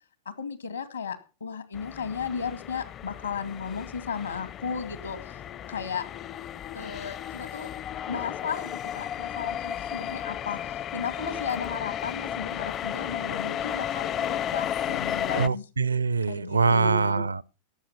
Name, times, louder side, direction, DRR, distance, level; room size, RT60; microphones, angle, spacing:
voice 1, 0.3-5.4 5.7-6.0 6.7-7.7 8.1-15.7 16.3-17.2, left 6 dB, 75° left, 2.0 m, -34 dB
sound 1, 1.7-15.5, left 10 dB, 30° left, 0.5 m, -34 dB
voice 2, 15.3-17.4, right 5 dB, 75° right, 0.6 m, -24 dB
17.5 x 7.7 x 5.8 m
figure-of-eight pair, 90°, 0 cm